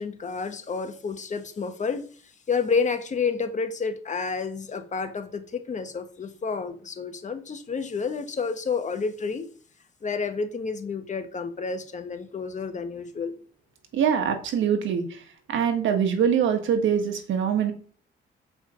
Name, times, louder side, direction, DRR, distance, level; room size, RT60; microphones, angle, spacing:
voice 1, 0.0-2.1 2.5-9.5 10.0-13.3, left 5 dB, 35° left, 7 dB, 1.3 m, -30 dB
voice 2, 13.9-15.0 15.5-17.7, right 8 dB, 75° right, 6 dB, 1.6 m, -23 dB
7.1 x 5.0 x 5.0 m, 0.43 s
cardioid pair, 90°, 20 cm